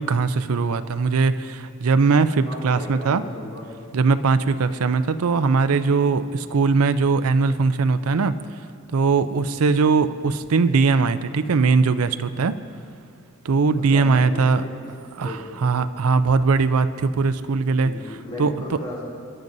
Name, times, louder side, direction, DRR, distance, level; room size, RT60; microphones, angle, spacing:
voice 1, 0.0-3.2 3.9-8.3 8.9-12.6 13.4-14.6 15.1-15.3 15.6-17.9 18.4-18.5, right 4 dB, 80° right, 11 dB, 0.5 m, -20 dB
voice 2, 2.4-3.7 13.8-14.9 15.2-15.6 17.8-19.0, left 1 dB, 20° left, -7 dB, 4.2 m, -36 dB
27.5 x 10.5 x 2.7 m, 2.3 s
head